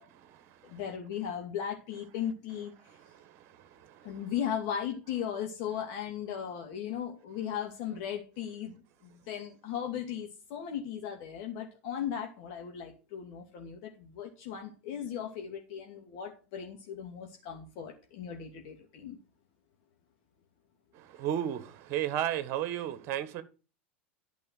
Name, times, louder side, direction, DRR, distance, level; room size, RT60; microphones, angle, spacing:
voice 1, 0.0-0.8 2.9-4.2 20.9-23.4, right 11 dB, 45° right, 1.6 m, -35 dB
voice 2, 0.6-2.7 4.0-19.2, left 9 dB, 50° left, 2.4 m, -37 dB
11.5 x 5.5 x 7.7 m
figure-of-eight pair, 85°, 7 cm